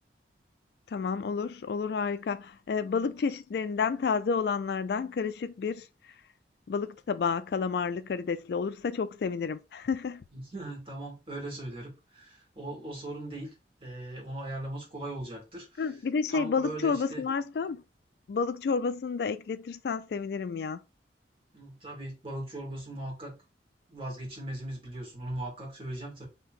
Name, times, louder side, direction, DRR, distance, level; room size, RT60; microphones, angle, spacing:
voice 1, 0.9-5.9 6.7-10.2 15.8-17.8 18.3-20.8, left 5 dB, 60° left, 0.3 m, -30 dB
voice 2, 10.3-13.5 13.8-15.8 16.3-17.2 21.5-23.4 23.9-26.3, right 1 dB, 30° right, 1.8 m, -39 dB
3.2 x 2.9 x 4.4 m
head